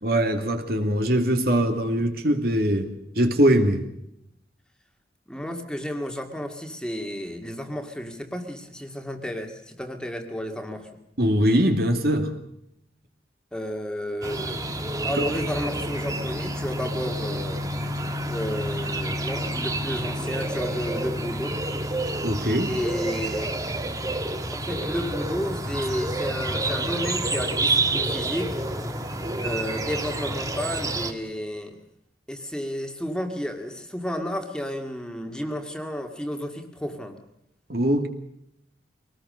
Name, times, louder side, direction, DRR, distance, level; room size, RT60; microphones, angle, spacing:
voice 1, 0.0-3.9 11.2-12.3 15.2-15.3 22.2-22.7 37.7-38.1, equal, 55° right, 6 dB, 2.6 m, -22 dB
voice 2, 5.3-10.9 13.5-14.6 15.0-17.6 18.3-21.6 22.7-23.6 24.5-28.6 29.4-31.8 32.3-37.2, equal, 5° left, 4 dB, 2.1 m, -32 dB
sound 1, 14.2-31.1, right 1 dB, 20° right, 1.6 m, -29 dB
24.0 x 19.5 x 6.6 m, 0.78 s
head